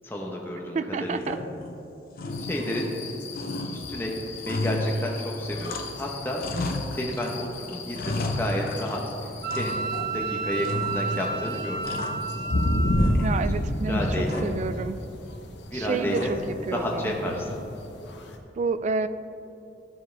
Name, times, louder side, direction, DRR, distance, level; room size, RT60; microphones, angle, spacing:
voice 1, 0.0-1.4 2.5-2.9 3.7-4.1 4.5-6.4 6.9-9.8 10.1-11.8 13.4-14.5 15.7-16.3 16.7-17.5, left 1 dB, 15° left, -1 dB, 0.8 m, -31 dB
voice 2, 0.7-1.4 13.2-15.0 15.7-17.1 18.6-19.1, right 4 dB, 40° right, 12 dB, 0.3 m, -29 dB
sound 1, 1.2-1.8 2.1-3.1 3.3-6.1 6.4-7.4 7.7-9.1 9.5-10.2 10.6-11.3 11.6-12.7 13.0-13.7 14.2-14.7 16.1-16.6, left 1 dB, 55° left, 0.7 m, -33 dB
sound 2, 2.3-18.4, left 1 dB, 85° left, 0.9 m, -32 dB
Wind instrument woodwind instrument, 9.4-13.2, right 4 dB, 60° right, 0.8 m, -31 dB
13.0 x 7.2 x 3.3 m, 2.7 s
head